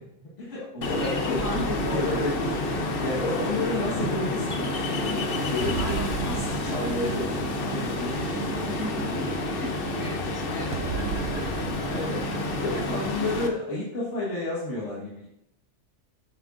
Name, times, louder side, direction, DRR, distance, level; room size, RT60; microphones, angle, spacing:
voice 1, 0.0-8.3 11.4-12.3 12.6-15.3, left 2 dB, 80° left, -5 dB, 1.8 m, -32 dB
Ocean, 0.8-13.5, left 2 dB, 55° left, 1.0 m, -29 dB
voice 2, 0.8-2.2 5.8-6.7 8.2-11.1, left 1 dB, 20° right, 0 dB, 0.9 m, -37 dB
sound 1, 1.4-13.4, right 6 dB, 65° right, 0.9 m, -37 dB
8.8 x 7.4 x 2.5 m, 0.83 s
omnidirectional pair, 1.2 m